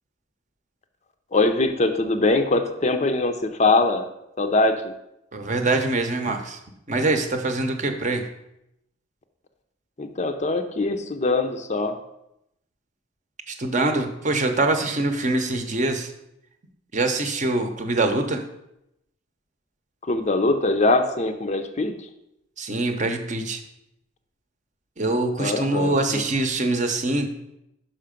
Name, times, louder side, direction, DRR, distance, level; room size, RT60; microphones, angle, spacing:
voice 1, 1.3-4.1 4.4-4.9 10.0-12.0 20.1-21.9 25.4-26.2, left 2 dB, 35° left, 7 dB, 0.5 m, -22 dB
voice 2, 5.3-6.6 6.9-8.3 13.5-16.1 16.9-18.4 22.6-23.6 25.0-27.3, right 2 dB, 40° right, 5 dB, 0.8 m, -24 dB
5.7 x 5.5 x 5.1 m, 0.84 s
head